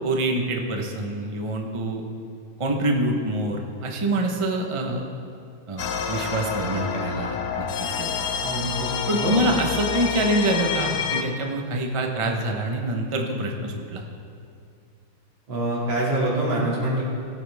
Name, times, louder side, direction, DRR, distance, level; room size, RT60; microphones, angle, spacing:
voice 1, 0.0-2.0 2.6-5.0 5.7-7.7 8.0-8.3 9.1-14.1, right 1 dB, 40° right, 2 dB, 0.4 m, -26 dB
sound 1, 5.8-11.2, left 7 dB, 65° left, 1.0 m, -28 dB
voice 2, 8.4-9.6 15.5-17.0, right 1 dB, 65° right, -5 dB, 3.3 m, -25 dB
18.0 x 8.4 x 3.5 m, 2.4 s
omnidirectional pair, 2.3 m